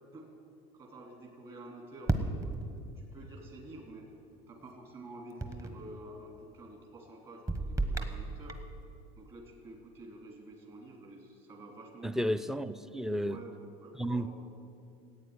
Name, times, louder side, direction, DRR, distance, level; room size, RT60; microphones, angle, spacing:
voice 1, 0.7-2.7 2.9-4.1 4.5-8.6 9.2-12.4 13.2-14.3, right 1 dB, 35° right, 0 dB, 3.1 m, -49 dB
sound 1, 2.1-3.1 5.4-5.9 7.5-8.8, right 2 dB, 20° right, 1.2 m, -34 dB
voice 2, 12.0-13.4 14.0-14.3, equal, 5° right, 13 dB, 0.5 m, -32 dB
16.0 x 9.0 x 9.6 m, 2.6 s
cardioid pair, 130°, 16 cm